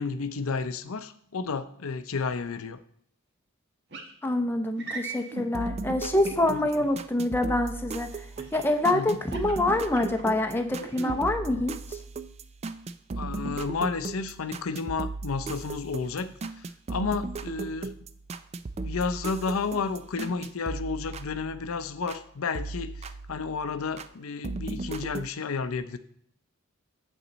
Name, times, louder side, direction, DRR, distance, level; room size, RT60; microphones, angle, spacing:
voice 1, 0.0-2.8 6.5-6.6 8.9-9.2 13.2-16.6 16.9-17.9 18.8-26.0, left 4 dB, 85° left, 11 dB, 0.6 m, -31 dB
sound 1, 3.9-4.1 4.8-5.5 6.2-6.9 8.4-8.7 9.2-10.3 10.8-11.2, right 3 dB, 50° right, 1.3 m, -38 dB
voice 2, 4.2-8.3 8.5-12.0, left 1 dB, 10° left, 5 dB, 0.6 m, -26 dB
sound 2, 5.5-22.2 22.5-24.1 24.4-25.3, right 3 dB, 30° right, 0.3 m, -37 dB
8.7 x 7.1 x 4.0 m, 0.64 s
head